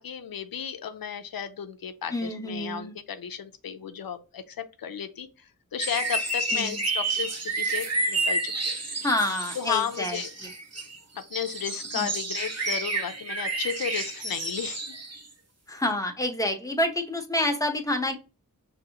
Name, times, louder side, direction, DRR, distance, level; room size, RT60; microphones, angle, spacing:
voice 1, 0.0-5.3 5.7-8.8 9.6-10.3 11.3-15.0, left 8 dB, 90° left, 0.5 m, -33 dB
voice 2, 2.1-2.9 6.5-6.8 9.0-10.5 11.9-12.1 15.7-18.1, left 1 dB, 10° left, 1.0 m, -28 dB
sound 1, 5.8-15.3 15.8-15.9, right 2 dB, 45° right, 1.1 m, -30 dB
6.0 x 2.7 x 2.8 m
wide cardioid pair, 60°, 34 cm